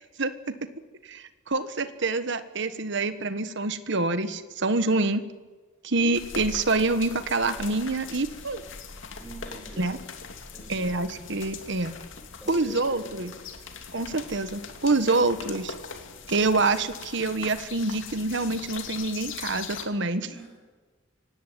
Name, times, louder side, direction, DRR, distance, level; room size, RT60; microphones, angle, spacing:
voice 1, 0.2-0.5 1.0-5.2 5.8-8.6 9.8-10.0 10.7-11.9 12.5-13.3 13.9-15.7 16.3-20.3, right 3 dB, 65° right, 11 dB, 1.5 m, -26 dB
sound 1, 6.1-19.8, left 5 dB, 70° left, 2.7 m, -41 dB
voice 2, 9.1-9.9 10.5-10.9 12.4-13.6 20.2-20.5, right 1 dB, 5° left, -2 dB, 7.9 m, -45 dB
24.0 x 18.0 x 9.3 m, 1.3 s
head